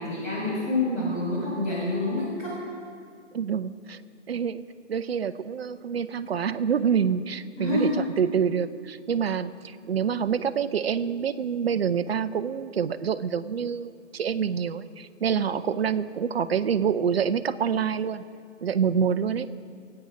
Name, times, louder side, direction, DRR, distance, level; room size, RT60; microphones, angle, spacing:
voice 1, 0.0-2.6 7.6-8.1, left 2 dB, 20° left, -9 dB, 3.8 m, -27 dB
voice 2, 3.3-4.0 4.3-4.6 4.9-7.9 8.2-18.2 18.6-19.5, right 7 dB, 55° right, 12 dB, 0.6 m, -26 dB
22.0 x 8.7 x 5.1 m, 2.2 s
figure-of-eight pair, 150°, 37 cm